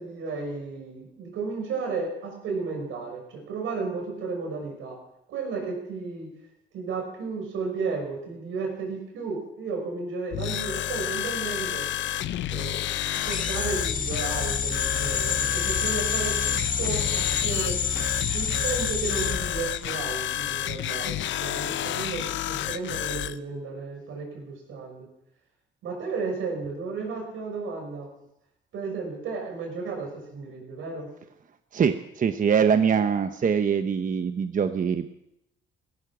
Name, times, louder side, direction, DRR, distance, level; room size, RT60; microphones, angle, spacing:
voice 1, 0.0-5.0 5.3-6.3 6.7-11.9 12.5-17.8 18.3-25.1 25.8-28.1 28.7-31.1, right 4 dB, 85° right, 2 dB, 6.0 m, -33 dB
sound 1, 10.3-23.4, left 12 dB, 70° left, 0.7 m, -30 dB
sound 2, 13.1-20.3, left 6 dB, 40° left, 1.5 m, -28 dB
voice 2, 31.7-35.1, right 7 dB, 40° right, 8 dB, 0.9 m, -23 dB
16.5 x 14.5 x 6.1 m, 0.82 s
cardioid pair, 90°, 20 cm